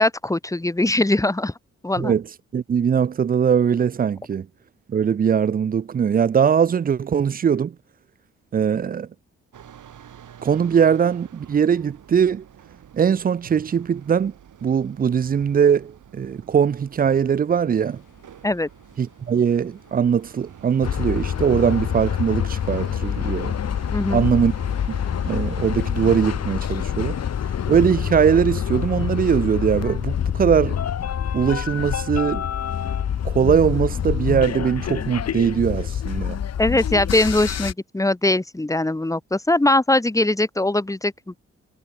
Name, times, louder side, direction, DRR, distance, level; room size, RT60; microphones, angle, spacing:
voice 1, 0.0-1.5 1.8-2.1 18.4-18.7 23.9-24.3 36.6-41.4, left 2 dB, 10° left, 1.2 m, -21 dB
voice 2, 2.5-4.5 4.9-7.7 8.5-9.1 10.4-12.4 12.9-14.3 14.6-18.0 19.0-23.5 24.1-24.5 24.9-25.0 25.3-27.2 27.7-30.8 31.3-32.5 33.2-36.4, right 7 dB, 30° right, 0.4 m, -21 dB
sound 1, 9.5-25.7, right 9 dB, 70° right, 4.2 m, -47 dB
sound 2, 17.8-31.8, left 9 dB, 70° left, 7.4 m, -58 dB
sound 3, 20.8-37.7, left 9 dB, 50° left, 1.0 m, -26 dB
supercardioid pair, 45°, 32 cm